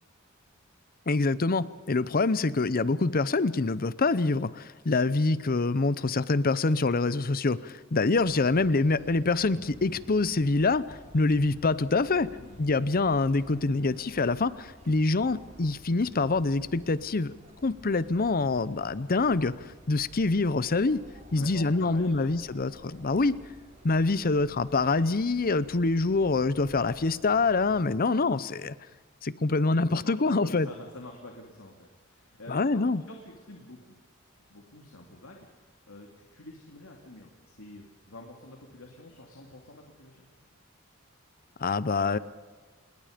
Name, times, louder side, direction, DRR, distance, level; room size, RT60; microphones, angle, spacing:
voice 1, 1.1-12.3 12.6-17.3 17.6-19.6 19.9-21.0 21.3-23.4 23.8-28.7 29.2-30.7 32.5-33.0 41.6-42.2, left 3 dB, 45° left, 17 dB, 0.7 m, -25 dB
sound 1, 8.2-27.9, equal, 35° right, 4.0 m, -52 dB
voice 2, 12.1-12.6 13.8-14.3 21.3-22.8 29.9-34.0 34.5-40.3, left 1 dB, 80° left, 1 dB, 2.6 m, -48 dB
27.0 x 20.5 x 5.2 m, 1.3 s
head